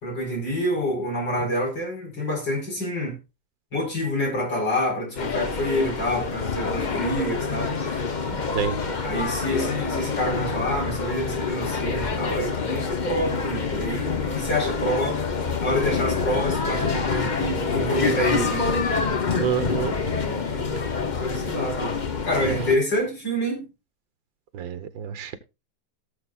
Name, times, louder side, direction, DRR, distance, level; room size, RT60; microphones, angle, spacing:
voice 1, 0.0-3.2 3.7-8.0 8.3-8.5 9.0-15.3 15.6-18.7 20.2-21.9 22.2-23.7, equal, 65° left, 5.2 m, -27 dB
sound 1, 5.2-22.8, left 5 dB, 35° left, 0.7 m, -27 dB
voice 2, 19.4-19.9 22.4-22.6 24.5-25.4, right 8 dB, 75° right, 1.9 m, -27 dB
17.5 x 7.0 x 2.4 m
omnidirectional pair, 2.1 m